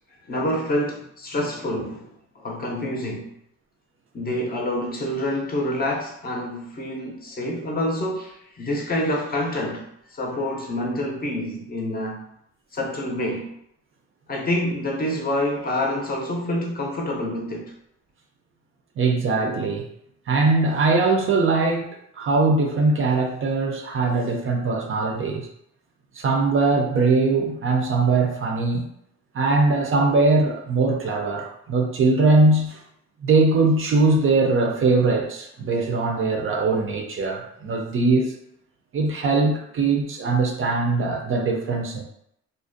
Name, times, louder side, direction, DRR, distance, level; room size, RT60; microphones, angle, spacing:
voice 1, 0.3-2.1 2.4-3.3 4.1-12.3 12.7-13.5 14.3-17.7, left 1 dB, 30° left, -1 dB, 0.6 m, -27 dB
voice 2, 19.0-19.9 20.3-21.9 22.2-25.5 26.2-28.9 29.3-32.8 33.2-38.3 38.9-42.0, right 3 dB, 45° right, 2 dB, 0.5 m, -21 dB
2.4 x 2.0 x 2.5 m, 0.74 s
cardioid pair, 90°, 30 cm